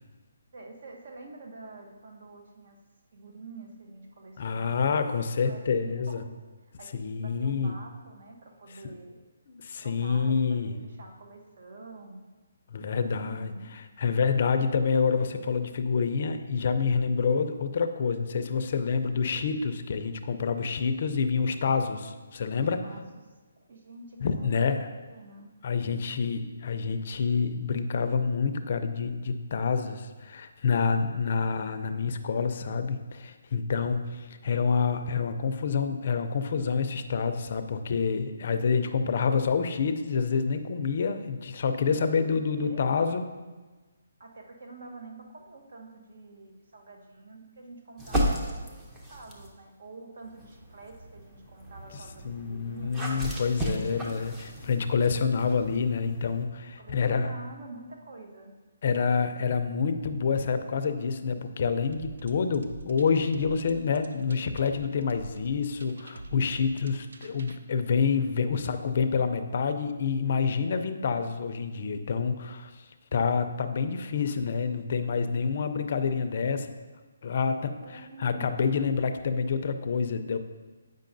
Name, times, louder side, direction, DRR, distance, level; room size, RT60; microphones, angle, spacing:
voice 1, 0.5-2.8 3.1-5.2 5.4-6.4 6.8-9.2 9.8-12.2 12.9-13.8 22.5-25.5 42.2-42.8 44.2-53.0 56.8-58.5 77.4-78.5, right 3 dB, 60° right, 3 dB, 0.9 m, -47 dB
voice 2, 4.4-6.2 6.9-7.7 9.5-10.7 12.7-13.5 14.0-22.8 24.2-24.9 25.6-43.2 52.2-57.3 58.8-72.8 73.1-76.7 77.2-80.4, left 5 dB, 45° left, 8 dB, 0.4 m, -27 dB
sound 1, 48.0-49.6 50.2-56.4, equal, 10° right, 0.6 m, -35 dB
sound 2, 61.9-67.6, right 1 dB, 75° right, 0.4 m, -46 dB
8.3 x 5.2 x 2.6 m, 1.3 s
hypercardioid pair, 165°, 0 cm